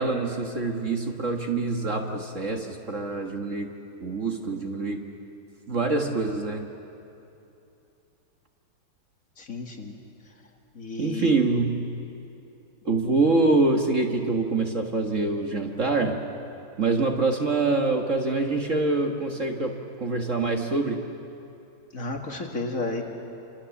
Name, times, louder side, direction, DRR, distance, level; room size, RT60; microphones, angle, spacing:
voice 1, 0.0-3.7 4.0-5.1 5.7-6.7 11.0-11.9 12.8-16.2 16.8-21.0, right 3 dB, 40° right, 3 dB, 1.7 m, -25 dB
voice 2, 9.4-10.0 10.3-10.4 10.7-11.4 21.9-23.0, left 3 dB, 45° left, 2 dB, 2.4 m, -32 dB
27.0 x 26.0 x 7.2 m, 2.8 s
omnidirectional pair, 2.1 m